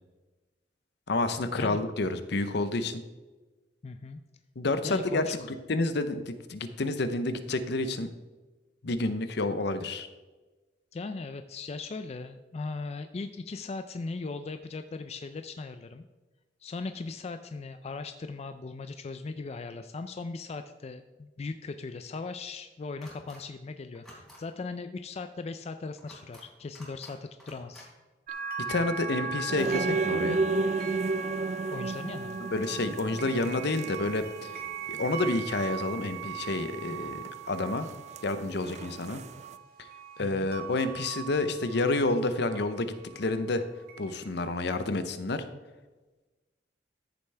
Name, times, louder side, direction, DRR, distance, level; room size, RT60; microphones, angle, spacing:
voice 1, 1.1-3.0 4.6-8.1 8.8-10.1 28.7-30.4 32.5-34.5 34.9-37.9 38.2-39.2 40.2-43.6 44.0-45.4, left 2 dB, 65° left, 11 dB, 0.7 m, -29 dB
voice 2, 3.8-4.2 4.8-5.5 10.9-16.0 16.6-27.9 31.7-32.4 40.2-40.5, left 3 dB, 35° left, 9 dB, 0.4 m, -38 dB
sound 1, 23.0-23.4 23.9-24.4 26.0-26.4 26.7-27.1 27.4-27.9, equal, ahead, 3.4 m, -50 dB
sound 2, 28.3-43.4 43.9-44.2, right 5 dB, 55° right, 1.3 m, -39 dB
sound 3, 29.5-34.3 34.6-34.7 34.9-35.0 36.9-37.3 37.6-39.5, right 3 dB, 40° right, 0.3 m, -32 dB
13.5 x 6.9 x 3.3 m, 1.2 s
head